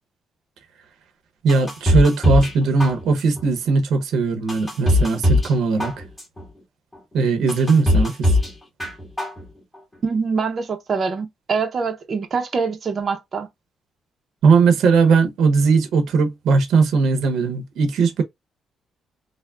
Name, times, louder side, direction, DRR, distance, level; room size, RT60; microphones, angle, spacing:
voice 1, 1.4-6.0 7.1-8.3 14.4-18.2, right 4 dB, 80° right, 0.8 m, -18 dB
sound 1, 1.5-2.5 2.8-3.4 3.9-4.0 4.5-5.5 5.8-6.4 6.9-7.0 7.5-8.5 8.8-9.4 9.7-9.8, left 1 dB, 15° left, 1.9 m, -20 dB
voice 2, 10.0-13.5, right 5 dB, 45° right, 0.6 m, -24 dB
3.5 x 2.0 x 2.3 m
cardioid pair, 90°, 0 cm